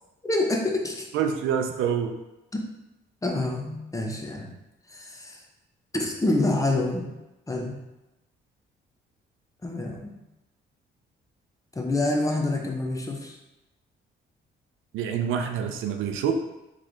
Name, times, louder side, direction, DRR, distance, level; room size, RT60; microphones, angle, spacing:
voice 1, 0.2-1.1 2.5-2.6 3.2-4.5 4.9-5.4 5.9-7.1 7.5-7.8 9.6-10.1 11.7-13.4, left 2 dB, 15° left, 1 dB, 0.8 m, -27 dB
voice 2, 1.1-2.1 14.9-16.3, right 8 dB, 90° right, 6 dB, 0.5 m, -26 dB
3.7 x 3.3 x 3.6 m, 0.96 s
cardioid pair, 90°, 20 cm